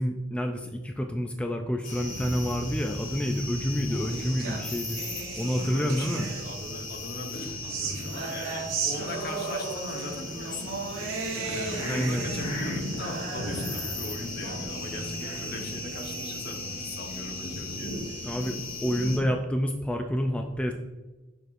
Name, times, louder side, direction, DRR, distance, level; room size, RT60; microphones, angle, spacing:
voice 1, 0.0-5.0 5.3-6.3 11.9-12.3 18.2-18.6 18.8-20.7, equal, 5° left, 3 dB, 0.3 m, -28 dB
sound 1, 1.8-19.2, left 2 dB, 80° left, 2.0 m, -36 dB
sound 2, 3.4-6.8 7.3-18.7, right 4 dB, 75° right, 1.1 m, -37 dB
voice 2, 5.3-10.7 11.4-18.2, left 1 dB, 50° left, 3 dB, 1.0 m, -39 dB
6.5 x 6.5 x 2.5 m, 1.2 s
head